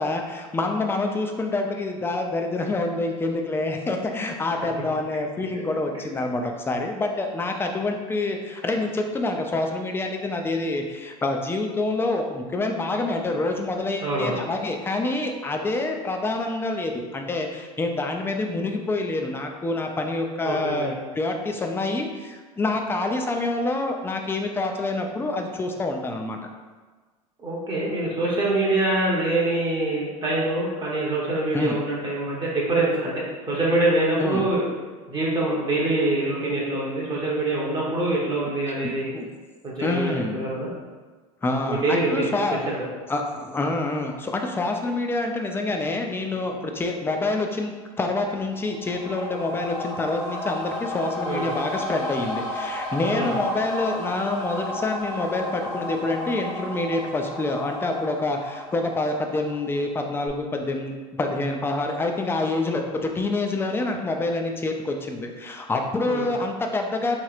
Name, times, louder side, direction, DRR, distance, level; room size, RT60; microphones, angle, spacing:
voice 1, 0.0-26.4 31.5-31.8 34.2-34.4 38.8-39.3 39.8-40.5 41.4-42.6 43.1-67.2, left 2 dB, 10° left, 3 dB, 0.4 m, -27 dB
voice 2, 14.0-14.4 20.4-20.9 27.4-34.6 35.1-39.1 39.6-40.7 41.7-42.3 42.7-42.8 51.2-51.5 53.1-53.3 66.1-66.3, right 2 dB, 25° right, -5 dB, 0.8 m, -25 dB
sound 1, 48.5-59.9 60.3-60.4, left 1 dB, 65° left, 0.7 m, -33 dB
3.0 x 3.0 x 2.4 m, 1.4 s
hypercardioid pair, 80°, 19 cm